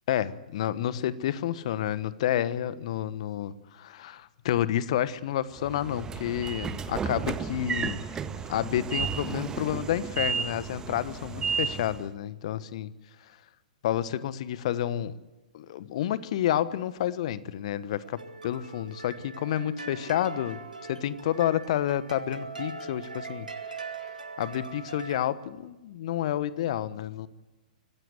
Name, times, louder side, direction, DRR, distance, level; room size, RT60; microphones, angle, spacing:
voice 1, 0.1-8.1 8.5-12.9 13.8-15.2 15.5-20.6 20.9-23.5 24.4-27.3, left 11 dB, 50° left, 16 dB, 1.2 m, -30 dB
Train / Sliding door, 5.6-12.1, right 6 dB, 15° right, 1.4 m, -33 dB
sound 1, 18.0-25.3, right 3 dB, 80° right, 2.5 m, -41 dB
24.0 x 15.5 x 8.1 m, 1.1 s
figure-of-eight pair, 110°, 4 cm